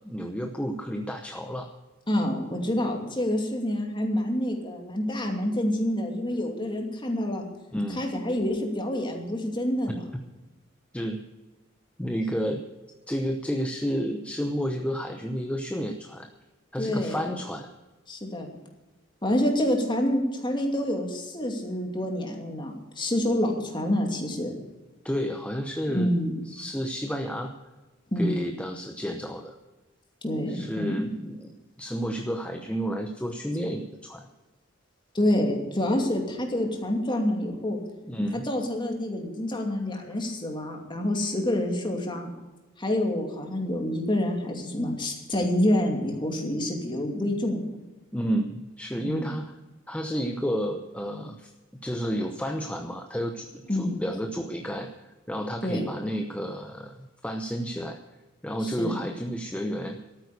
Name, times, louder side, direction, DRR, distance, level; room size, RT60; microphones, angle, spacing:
voice 1, 0.0-1.7 7.7-8.0 9.9-10.0 10.9-11.2 12.0-12.6 13.1-16.3 16.7-17.7 25.0-26.1 26.5-27.5 28.2-29.5 30.5-34.3 38.0-38.5 48.1-49.5 49.9-51.5 51.8-58.0 58.4-60.0, equal, 5° left, 4 dB, 0.8 m, -31 dB
voice 2, 2.1-7.4 7.9-10.1 16.8-17.3 18.1-18.5 19.2-24.5 25.9-26.3 28.1-28.3 30.2-31.0 35.1-37.8 38.3-42.3 42.8-47.6 49.0-49.3 53.7-54.0 55.6-55.9 58.6-59.0, left 1 dB, 25° left, 2 dB, 2.6 m, -27 dB
13.0 x 9.4 x 8.2 m, 1.1 s
head